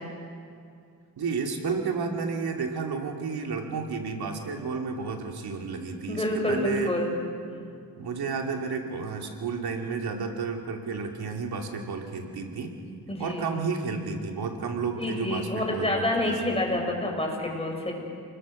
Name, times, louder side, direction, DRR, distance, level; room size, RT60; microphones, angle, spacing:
voice 1, 1.2-6.9 8.0-12.7 13.2-16.1 16.5-16.6, right 4 dB, 85° right, 2 dB, 2.7 m, -31 dB
voice 2, 6.1-7.1 13.1-13.4 14.9-17.9, left 1 dB, 15° left, 0 dB, 6.3 m, -28 dB
30.0 x 21.5 x 6.5 m, 2.3 s
cardioid pair, 95°, 37 cm